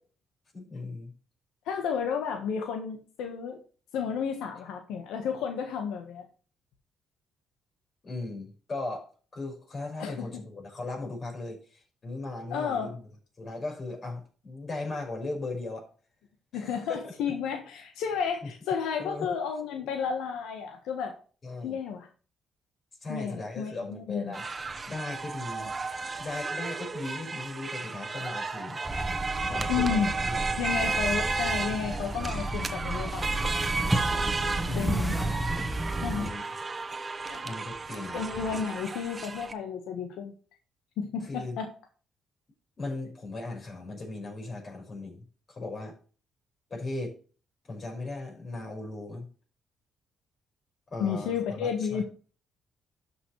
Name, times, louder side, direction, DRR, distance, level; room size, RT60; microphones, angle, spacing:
voice 1, 0.5-1.1 8.0-13.0 13.4-15.9 16.5-16.8 17.0-17.1 18.4-18.5 19.0-19.3 21.4-21.8 23.0-24.5 24.9-25.7 26.2-28.8 29.5-30.3 34.6-35.1 36.1-36.5 37.4-38.2 41.2-41.6 42.8-45.9 46.7-47.2 47.7-49.3 50.9-52.0, left 2 dB, 40° left, 1 dB, 5.5 m, -37 dB
voice 2, 1.6-3.6 3.9-6.2 10.0-10.4 12.5-12.9 16.5-21.1 21.6-22.1 23.1-24.3 29.7-30.1 30.6-33.6 34.7-35.2 36.0-36.3 37.3-37.4 37.9-40.3 41.0-41.7 51.0-52.0, left 7 dB, 90° left, 4 dB, 1.4 m, -32 dB
sound 1, 24.3-39.5, right 4 dB, 30° right, 1.0 m, -33 dB
sound 2, 28.8-36.3, right 1 dB, 10° right, 1.3 m, -32 dB
12.5 x 6.2 x 3.2 m, 0.39 s
cardioid pair, 90°, 0 cm